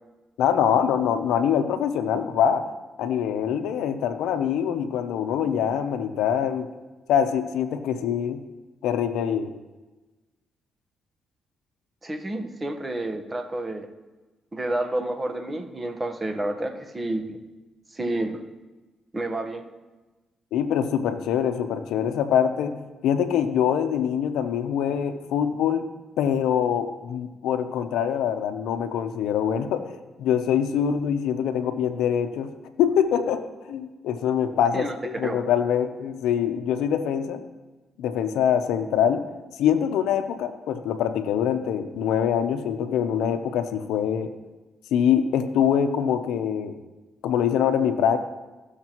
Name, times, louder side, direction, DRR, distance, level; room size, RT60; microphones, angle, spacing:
voice 1, 0.4-2.6 3.0-6.7 7.1-8.4 8.8-9.5 20.5-22.8 23.0-25.8 26.2-32.5 32.8-37.4 38.0-39.2 39.6-44.3 44.9-46.8 47.2-48.2, left 8 dB, 85° left, 9 dB, 0.7 m, -24 dB
voice 2, 12.0-13.9 14.5-17.4 17.9-18.4 19.1-19.6 34.7-34.9 35.2-35.5, right 1 dB, 25° right, 6 dB, 1.2 m, -29 dB
16.0 x 6.6 x 3.0 m, 1.2 s
cardioid pair, 70°, 0 cm